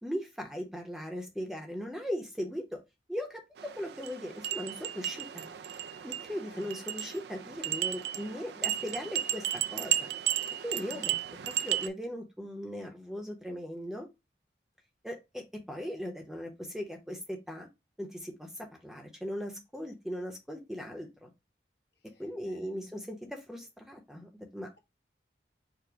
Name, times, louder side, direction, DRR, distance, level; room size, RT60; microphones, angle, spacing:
voice 1, 0.0-2.8 3.1-5.5 6.0-10.1 10.6-11.2 11.4-14.1 15.0-17.7 18.0-21.3 22.2-24.7, equal, 5° right, 0.7 m, -39 dB
sound 1, 3.6-11.9, right 11 dB, 70° right, 0.4 m, -34 dB
voice 2, 10.8-11.2 22.4-22.9, left 1 dB, 70° left, 1.0 m, -51 dB
4.9 x 2.1 x 4.6 m
head